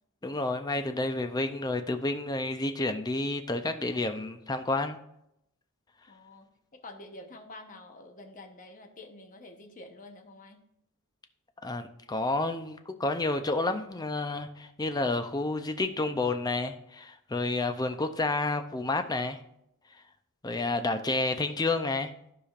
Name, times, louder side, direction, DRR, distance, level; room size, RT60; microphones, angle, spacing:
voice 1, 0.2-5.0 11.6-19.4 20.4-22.1, left 2 dB, 20° left, 7 dB, 0.5 m, -30 dB
voice 2, 6.1-10.6, left 2 dB, 35° left, 4 dB, 1.0 m, -48 dB
14.5 x 4.9 x 2.5 m, 0.78 s
head